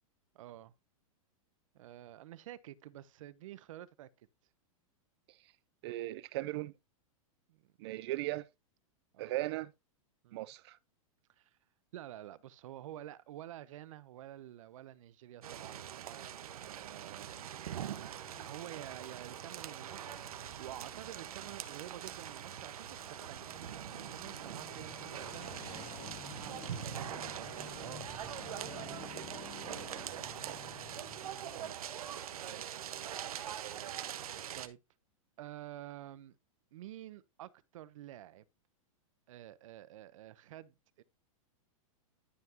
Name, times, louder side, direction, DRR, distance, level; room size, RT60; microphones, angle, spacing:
voice 1, 0.3-0.7 1.7-4.3 7.5-7.7 9.1-9.4 10.2-10.5 11.4-11.6 11.9-16.3 16.6-17.8 18.0-25.5 26.0-29.6 31.5-31.8 32.4-32.7 34.5-34.8 35.4-36.4 36.7-38.4 39.3-41.0, right 13 dB, 65° right, 0.9 m, -50 dB
voice 2, 5.8-6.7 7.8-8.5 9.2-9.7 10.3-10.8 17.1-17.2 30.5-30.7 31.5-31.7 33.4-33.9, right 17 dB, 45° right, 0.6 m, -38 dB
sound 1, 15.4-34.7, right 10 dB, 85° right, 1.3 m, -43 dB
sound 2, 16.5-31.7, left 6 dB, 40° left, 3.0 m, -53 dB
12.5 x 5.8 x 2.9 m
supercardioid pair, 155°, 18 cm